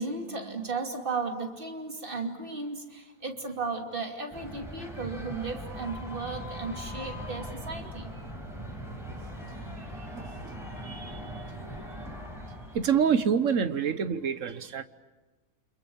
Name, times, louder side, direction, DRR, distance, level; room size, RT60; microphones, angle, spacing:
voice 1, 0.0-8.1, right 4 dB, 35° right, 3 dB, 2.9 m, -35 dB
sound 1, 4.3-13.2, equal, ahead, 6.7 m, -40 dB
voice 2, 9.8-11.3 12.1-12.2 12.7-14.8, right 7 dB, 60° right, 12 dB, 1.4 m, -28 dB
29.5 x 27.0 x 7.1 m, 1.2 s
omnidirectional pair, 1.6 m